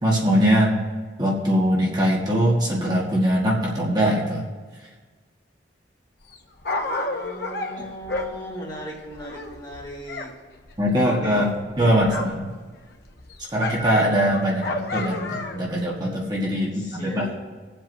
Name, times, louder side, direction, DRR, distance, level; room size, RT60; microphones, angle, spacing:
voice 1, 0.0-0.7 1.2-4.4 10.8-11.5 11.8-12.5 13.5-17.3, equal, 20° right, -4 dB, 1.6 m, -21 dB
Dog, 6.2-10.3 10.6-12.5 12.8-15.7 16.4-16.5, left 2 dB, 60° left, 1.0 m, -32 dB
voice 2, 6.7-10.4 10.9-12.1 14.5-14.6 16.5-17.3, equal, 20° left, -3 dB, 1.8 m, -38 dB
20.0 x 7.7 x 2.7 m, 1.4 s
head